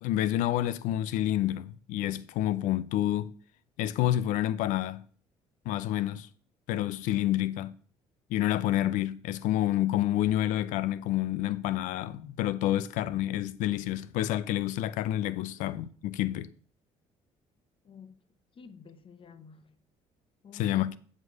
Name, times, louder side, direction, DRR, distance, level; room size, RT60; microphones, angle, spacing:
voice 1, 0.0-3.3 3.8-5.0 5.7-6.3 6.7-7.7 8.3-16.5 20.5-21.0, left 13 dB, 80° left, 0.6 m, -28 dB
voice 2, 17.8-18.2 18.6-19.8 20.4-21.0, left 5 dB, 40° left, 1.0 m, -50 dB
8.0 x 7.5 x 4.7 m
supercardioid pair, 80°, 13 cm